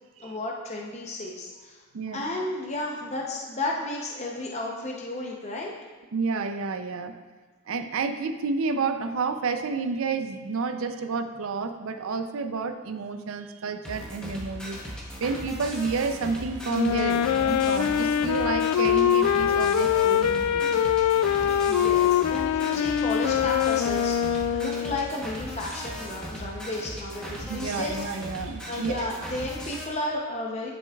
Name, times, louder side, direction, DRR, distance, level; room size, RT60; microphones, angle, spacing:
voice 1, 0.2-1.8 2.1-5.7 21.7-28.0 28.7-30.7, left 2 dB, 30° left, -1 dB, 0.6 m, -33 dB
voice 2, 6.1-7.1 7.7-14.8 15.2-20.8 21.1-21.9 27.5-29.1, right 4 dB, 65° right, 8 dB, 0.5 m, -30 dB
sound 1, 13.8-29.8, equal, 5° left, 0.9 m, -38 dB
Wind instrument woodwind instrument, 16.7-25.1, left 9 dB, 90° left, 0.3 m, -23 dB
11.0 x 6.1 x 2.3 m, 1.4 s
head